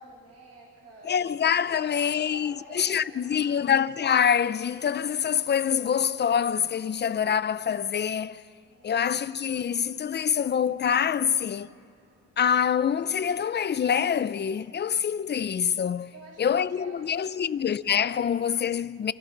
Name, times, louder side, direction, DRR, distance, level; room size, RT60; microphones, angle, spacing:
voice 1, 0.0-1.1 1.6-3.7 8.6-9.1 16.1-17.4, right 3 dB, 55° right, 5.8 m, -50 dB
voice 2, 1.0-8.4 8.8-11.7 12.4-16.1 16.4-19.1, left 8 dB, 35° left, 0.6 m, -25 dB
sound 1, 1.3-2.7, left 7 dB, 70° left, 2.6 m, -54 dB
28.5 x 28.5 x 4.0 m
cardioid pair, 90°, 30 cm